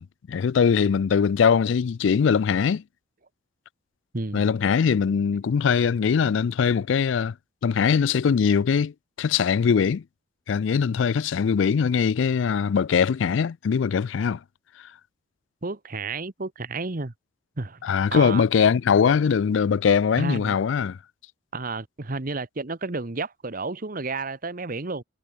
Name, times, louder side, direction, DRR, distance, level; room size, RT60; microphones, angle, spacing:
voice 1, 0.0-2.8 4.3-7.3 7.6-8.9 9.2-10.0 10.5-14.4 17.8-21.0, left 6 dB, 65° left, 0.4 m, -21 dB
voice 2, 15.6-17.1 17.6-17.8 18.1-18.4 20.2-20.6 21.5-25.0, right 3 dB, 45° right, 1.1 m, -31 dB
head